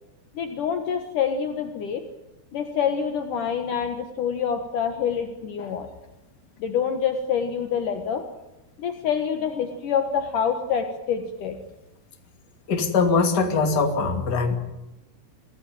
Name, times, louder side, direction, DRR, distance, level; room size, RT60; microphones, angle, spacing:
voice 1, 0.3-2.0 2.5-5.9 6.6-8.3 8.8-11.6, left 7 dB, 65° left, 6 dB, 2.7 m, -26 dB
voice 2, 12.7-14.6, left 4 dB, 30° left, 4 dB, 2.6 m, -22 dB
25.5 x 17.0 x 9.2 m, 0.97 s
omnidirectional pair, 4.5 m